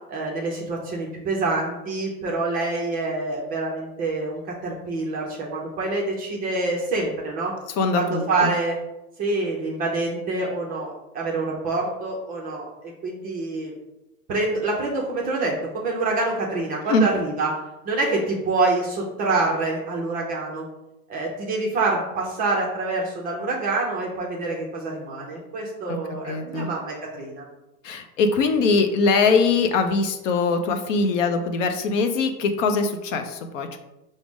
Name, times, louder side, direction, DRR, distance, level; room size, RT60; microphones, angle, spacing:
voice 1, 0.1-7.5 8.0-8.8 9.2-13.7 14.3-17.5 17.8-20.7 21.1-27.4, right 3 dB, 20° right, -2 dB, 0.4 m, -26 dB
voice 2, 7.8-8.5 16.9-17.1 25.9-26.0 26.2-26.7 27.8-33.8, left 4 dB, 50° left, 7 dB, 0.5 m, -22 dB
4.8 x 2.1 x 3.5 m, 0.97 s
hypercardioid pair, 105°, 48 cm